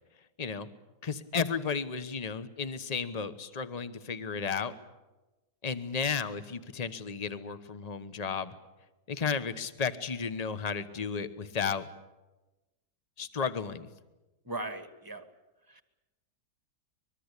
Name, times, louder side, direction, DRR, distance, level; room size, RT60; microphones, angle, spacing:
voice 1, 1.0-4.7 5.6-8.5 9.1-11.9 13.2-13.9, left 6 dB, 25° left, 12 dB, 1.1 m, -33 dB
voice 2, 14.5-15.2 15.8-15.9, right 2 dB, 15° right, 9 dB, 1.5 m, -38 dB
24.5 x 22.0 x 8.3 m, 1.1 s
omnidirectional pair, 1.7 m